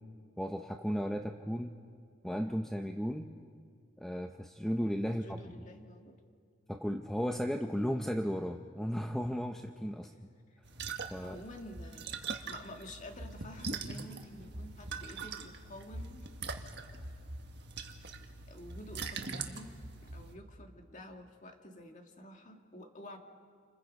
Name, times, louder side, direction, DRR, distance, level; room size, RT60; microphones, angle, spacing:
voice 1, 0.4-1.7 2.2-3.3 4.0-5.4 6.7-10.3 11.1-11.4, equal, ahead, 4 dB, 0.7 m, -35 dB
voice 2, 5.1-6.2 10.5-10.6 11.2-12.2 12.5-16.3 16.9-17.0 18.5-23.2, left 1 dB, 35° left, 3 dB, 2.0 m, -50 dB
sound 1, 10.6-20.4, right 4 dB, 55° right, 1.6 m, -42 dB
29.0 x 29.0 x 5.3 m, 2.2 s
head